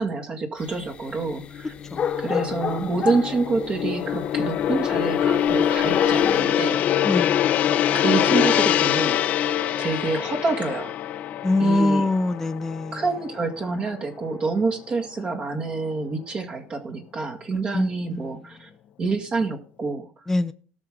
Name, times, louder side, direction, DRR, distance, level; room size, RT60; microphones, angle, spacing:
voice 1, 0.0-1.7 2.2-6.8 7.9-9.2 9.8-10.9 11.6-12.1 12.9-18.7 19.0-20.3, right 3 dB, 30° right, 2.1 m, -27 dB
sound 1, 0.6-6.4, left 8 dB, 35° left, 1.4 m, -32 dB
Gong, 1.4-13.9 14.2-14.5, left 10 dB, 50° left, 0.7 m, -24 dB
voice 2, 1.9-2.4 7.0-7.3 11.4-13.0 17.7-18.3 20.3-20.5, left 2 dB, 10° left, 0.6 m, -24 dB
18.5 x 6.4 x 3.7 m
cardioid pair, 125°, 3 cm